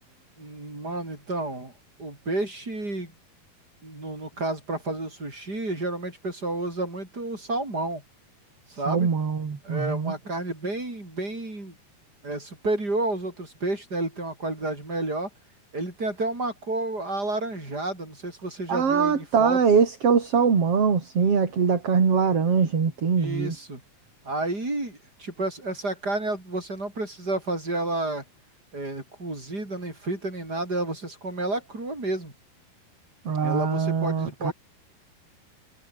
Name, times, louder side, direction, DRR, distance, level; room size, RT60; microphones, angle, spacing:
voice 1, 0.4-1.7 2.0-3.1 3.8-8.0 8.7-9.1 9.6-11.7 12.2-15.3 15.7-19.6 23.2-23.8 24.2-28.2 28.7-32.3 33.4-34.5, right 2 dB, 25° right, 8.6 m, -30 dB
voice 2, 8.9-10.1 18.7-23.5 33.3-34.5, right 6 dB, 40° right, 3.9 m, -22 dB
omnidirectional pair, 4.3 m